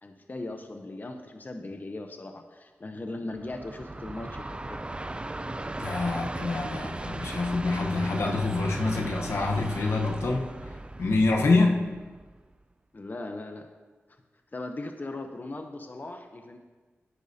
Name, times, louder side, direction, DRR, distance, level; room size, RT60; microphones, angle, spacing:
voice 1, 0.0-4.8 12.9-13.7 14.5-16.6, left 2 dB, 40° left, 6 dB, 0.7 m, -38 dB
Train, 3.3-12.5, right 2 dB, 25° right, 0.5 m, -37 dB
voice 2, 5.8-10.5 11.0-11.9, left 3 dB, 85° left, 1 dB, 1.0 m, -26 dB
10.5 x 10.0 x 2.8 m, 1.4 s
cardioid pair, 55°, 4 cm